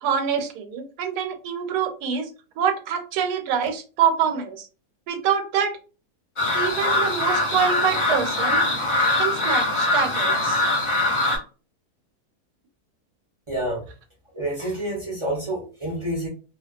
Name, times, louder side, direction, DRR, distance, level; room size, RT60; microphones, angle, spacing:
voice 1, 0.0-2.3 2.6-4.7 5.1-5.7 6.5-8.6 9.2-10.6, right 7 dB, 85° right, 1.1 m, -25 dB
sound 1, 6.4-11.4, left 2 dB, 45° left, 0.4 m, -22 dB
voice 2, 13.5-13.8 14.3-16.3, right 1 dB, 40° right, 0.4 m, -28 dB
2.4 x 2.2 x 2.3 m
omnidirectional pair, 1.7 m